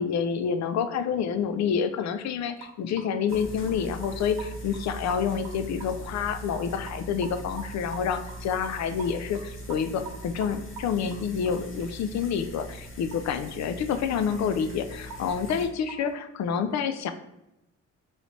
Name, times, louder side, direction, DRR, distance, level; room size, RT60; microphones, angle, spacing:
voice 1, 0.0-17.1, left 7 dB, 65° left, 10 dB, 0.5 m, -28 dB
sound 1, 2.6-2.7 3.0-4.8 5.1-5.9 6.2-6.3 6.5-6.6 6.9-11.9 12.2-12.4 12.7-12.8 13.1-13.2 13.5-13.6 13.9-14.0 14.3-14.7 15.1-15.2 15.5-16.1, right 6 dB, 85° right, 0.9 m, -43 dB
sound 2, 3.3-15.7, right 1 dB, 45° left, 1.2 m, -41 dB
3.2 x 3.1 x 4.0 m, 0.91 s
cardioid pair, 90°, 30 cm